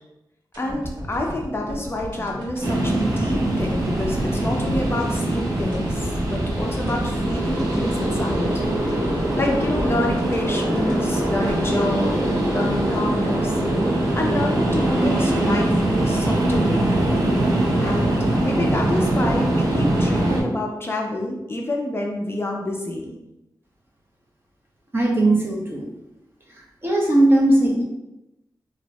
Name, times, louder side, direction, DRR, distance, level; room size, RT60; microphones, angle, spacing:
sound 1, 0.5-12.8 13.1-13.2, equal, 75° right, 1.3 m, -35 dB
voice 1, 0.6-8.5 8.8-13.5 14.2-17.0 17.8-23.1, left 1 dB, 30° left, 0 dB, 0.4 m, -28 dB
sound 2, 2.6-20.4, right 1 dB, 55° right, 0.9 m, -22 dB
voice 2, 24.9-25.9 26.8-27.8, right 1 dB, 30° right, -2 dB, 0.7 m, -18 dB
2.6 x 2.1 x 3.9 m, 0.93 s
wide cardioid pair, 135°, 8 cm